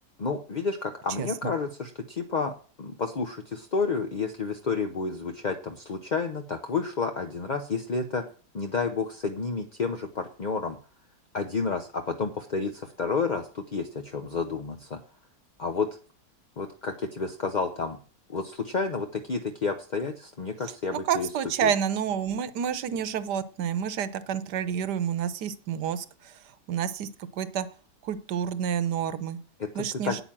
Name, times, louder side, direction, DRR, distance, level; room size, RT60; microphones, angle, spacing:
voice 1, 0.2-8.2 8.5-10.8 11.3-15.0 15.6-15.9 16.6-18.0 18.3-21.3 21.6-21.7 29.6-30.2, left 4 dB, 40° left, 5 dB, 0.6 m, -30 dB
voice 2, 1.2-1.5 20.6-26.4 26.7-27.7 28.0-29.4 29.7-30.2, right 8 dB, 75° right, 14 dB, 1.4 m, -29 dB
9.3 x 8.9 x 7.4 m, 0.41 s
omnidirectional pair, 1.9 m